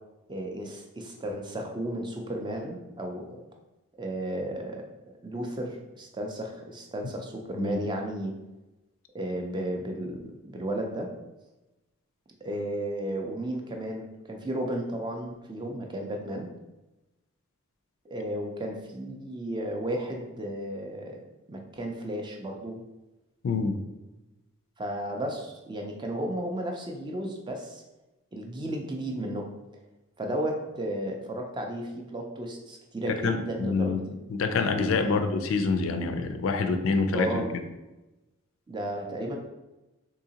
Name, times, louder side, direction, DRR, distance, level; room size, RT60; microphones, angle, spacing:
voice 1, 0.3-3.4 3.9-8.3 9.1-10.2 10.4-11.1 12.4-16.5 18.1-21.2 21.5-22.8 24.8-27.8 28.3-29.5 30.2-34.3 35.0-35.2 37.1-37.4 38.7-39.4, right 1 dB, 20° right, 2 dB, 0.3 m, -34 dB
voice 2, 23.4-23.8 33.1-34.0 34.3-37.5, left 4 dB, 65° left, 7 dB, 0.3 m, -26 dB
3.7 x 2.8 x 2.8 m, 1.0 s
head